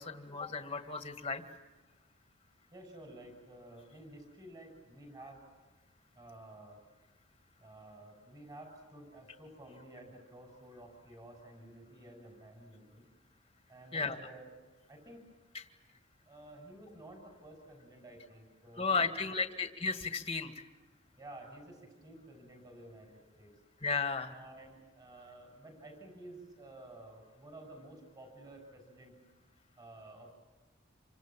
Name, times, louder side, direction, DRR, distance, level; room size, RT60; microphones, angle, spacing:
voice 1, 0.0-1.4 13.9-14.2 15.5-15.6 18.7-20.7 23.8-24.4, left 4 dB, 25° left, 7 dB, 1.9 m, -34 dB
voice 2, 2.7-5.4 6.1-6.8 7.6-13.0 13.7-14.5 14.9-15.2 16.3-19.4 21.2-23.1 23.4-23.5 24.3-29.1 29.8-30.3, right 1 dB, 20° right, 3 dB, 6.5 m, -52 dB
28.0 x 25.5 x 7.4 m, 1.3 s
head